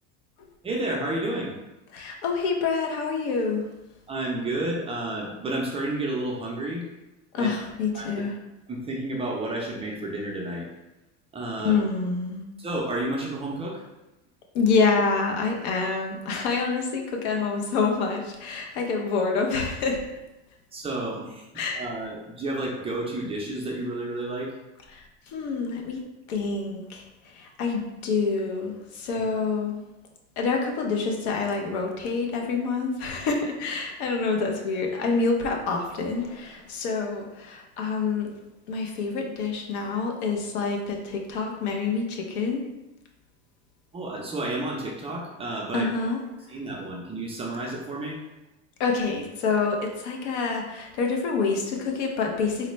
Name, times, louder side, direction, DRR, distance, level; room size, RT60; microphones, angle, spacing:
voice 1, 0.6-1.5 4.1-6.9 7.4-7.5 7.9-8.1 8.7-10.7 11.3-11.7 12.6-13.8 20.7-21.5 21.7-24.5 43.9-45.9 46.5-48.2, right 2 dB, 15° right, -2 dB, 0.4 m, -31 dB
voice 2, 1.9-3.6 7.3-8.3 11.6-12.4 14.5-20.0 21.6-21.8 24.9-26.0 26.3-29.8 30.4-38.3 38.7-42.7 45.7-46.2 48.8-52.7, left 4 dB, 75° left, 1 dB, 0.8 m, -27 dB
3.9 x 2.1 x 3.1 m, 0.97 s
supercardioid pair, 130°, 34 cm